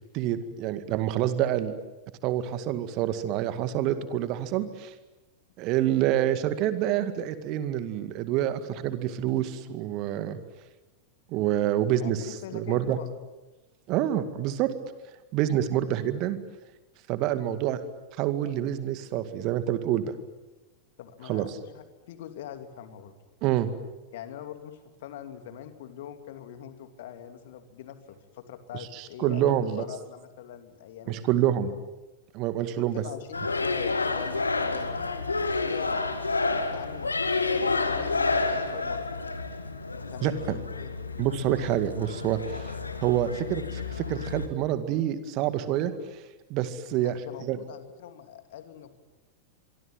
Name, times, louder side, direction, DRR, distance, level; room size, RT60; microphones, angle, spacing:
voice 1, 0.1-1.7 2.2-4.9 5.6-10.4 11.3-13.0 13.9-14.7 15.3-16.4 17.1-17.8 18.2-20.1 21.2-21.5 23.4-23.7 28.9-29.8 31.1-31.7 32.3-33.0 40.2-40.6 41.2-42.7 43.0-46.2 46.5-47.1 47.5-47.6, right 12 dB, 40° right, 11 dB, 2.1 m, -27 dB
voice 2, 12.0-13.1 21.0-23.1 24.1-31.4 32.7-36.0 36.3-37.1 37.5-39.1 39.9-40.9 47.0-49.0, left 10 dB, 55° left, 8 dB, 2.8 m, -43 dB
sound 1, 33.3-44.5, left 3 dB, 80° left, 2.0 m, -30 dB
25.0 x 24.5 x 9.4 m, 1.1 s
figure-of-eight pair, 90°, 0 cm